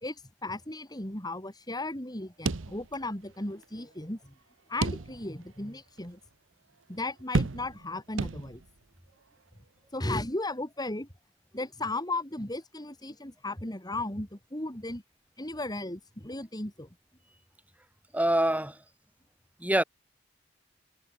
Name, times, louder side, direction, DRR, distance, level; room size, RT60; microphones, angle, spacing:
voice 1, 0.0-4.3 4.7-6.2 6.9-8.6 9.9-11.1 11.5-15.0 15.4-16.9, left 2 dB, 20° left, 4.6 m, -35 dB
sound 1, 2.5-3.3 3.6-3.7 4.8-5.5 6.0-6.1 7.3-7.9 8.2-8.8, right 3 dB, 85° right, 1.0 m, -31 dB
voice 2, 18.1-18.8 19.6-19.8, right 1 dB, 10° right, 3.5 m, -25 dB
head